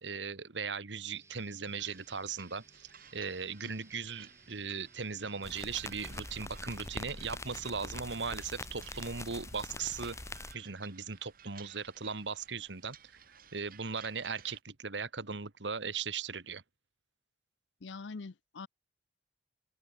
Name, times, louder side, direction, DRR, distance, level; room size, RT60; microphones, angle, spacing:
voice 1, 0.0-10.2 10.5-13.0 13.5-16.6, right 5 dB, 80° right, 1.5 m, -38 dB
sound 1, 1.1-9.1, right 2 dB, 15° right, 4.9 m, -63 dB
sound 2, 1.7-14.6, right 8 dB, 50° right, 7.1 m, -57 dB
sound 3, 5.4-10.5, left 2 dB, 15° left, 1.7 m, -44 dB
voice 2, 17.8-18.7, left 4 dB, 85° left, 0.7 m, -43 dB
open air
head